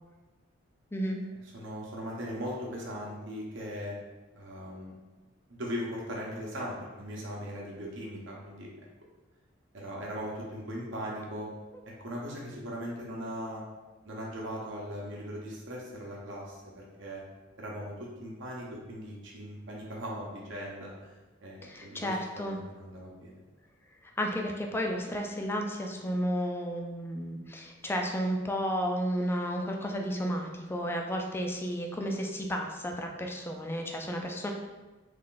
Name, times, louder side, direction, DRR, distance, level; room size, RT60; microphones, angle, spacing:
voice 1, 1.5-4.0 4.3-4.9 5.5-8.7 9.7-11.5 12.0-13.6 14.0-17.2 17.6-21.1 21.4-23.4, equal, 65° right, -3 dB, 0.8 m, -39 dB
voice 2, 21.6-22.6 24.2-34.5, equal, 10° left, 2 dB, 0.3 m, -32 dB
3.3 x 2.5 x 3.7 m, 1.2 s
head